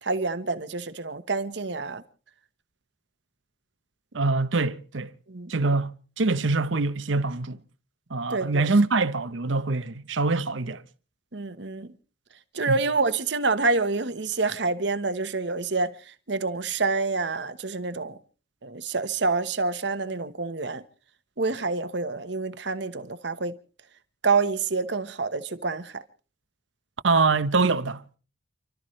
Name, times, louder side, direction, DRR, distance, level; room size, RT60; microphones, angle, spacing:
voice 1, 0.0-2.0 5.3-5.5 8.3-8.7 11.3-11.9 12.5-15.9 16.3-18.2 18.6-20.8 21.4-23.5 24.2-25.9, right 3 dB, 60° right, 1.1 m, -27 dB
voice 2, 4.1-5.1 5.5-7.6 8.1-10.8 12.7-12.8 27.0-28.2, right 3 dB, 80° right, 0.9 m, -24 dB
30.0 x 13.0 x 3.2 m
head